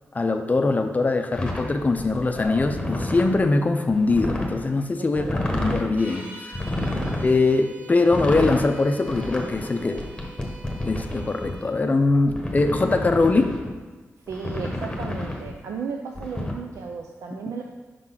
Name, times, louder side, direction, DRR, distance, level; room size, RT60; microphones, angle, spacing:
voice 1, 0.1-6.6 7.2-10.0 10.8-13.5, left 3 dB, 30° left, 6 dB, 0.5 m, -22 dB
sound 1, 1.3-3.4 3.9-4.6 5.1-5.9 6.5-7.3 8.0-8.7 9.1-11.5 12.3-13.7 14.3-15.5 16.1-16.5, left 1 dB, 15° left, 1.1 m, -29 dB
voice 2, 5.0-5.4 6.8-7.0 14.3-17.6, right 5 dB, 90° right, 2 dB, 0.4 m, -34 dB
sound 2, 5.9-11.7, right 2 dB, 35° right, 1.8 m, -44 dB
5.3 x 3.8 x 5.7 m, 1.3 s
cardioid pair, 85°, 5 cm